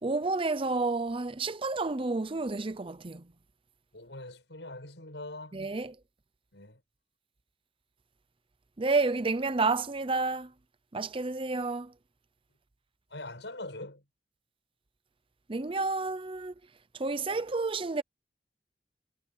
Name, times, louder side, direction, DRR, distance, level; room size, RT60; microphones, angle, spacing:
voice 1, 0.0-3.2 5.5-6.0 8.8-10.5 10.9-11.9 15.5-16.5 16.9-18.0, right 3 dB, 30° right, 0.7 m, -30 dB
voice 2, 3.9-5.6 6.5-6.8 13.1-14.0, left 2 dB, 85° left, 7.5 m, -42 dB
head